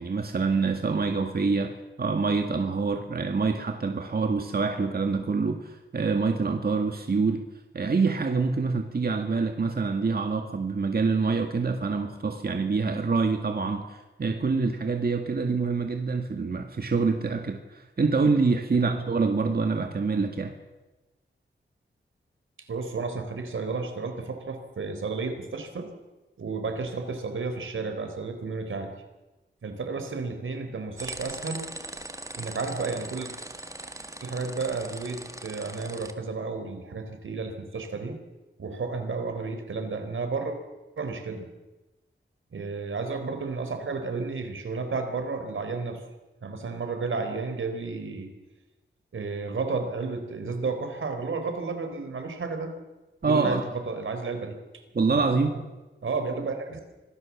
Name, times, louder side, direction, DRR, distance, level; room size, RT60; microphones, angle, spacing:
voice 1, 0.0-7.4 7.7-20.5 53.2-53.6 54.9-55.6, right 4 dB, 50° right, 4 dB, 2.0 m, -26 dB
voice 2, 22.7-25.9 26.4-28.9 29.6-31.6 32.3-33.3 34.2-38.2 38.6-40.6 41.0-41.5 42.5-46.0 46.4-48.3 49.1-52.8 53.2-54.8 55.1-55.2 55.5-55.6 56.0-56.8, right 4 dB, 90° right, 6 dB, 3.9 m, -32 dB
sound 1, 31.0-36.1, right 1 dB, 15° right, 1.8 m, -40 dB
25.5 x 18.5 x 7.3 m, 1.1 s
wide cardioid pair, 95°, 20 cm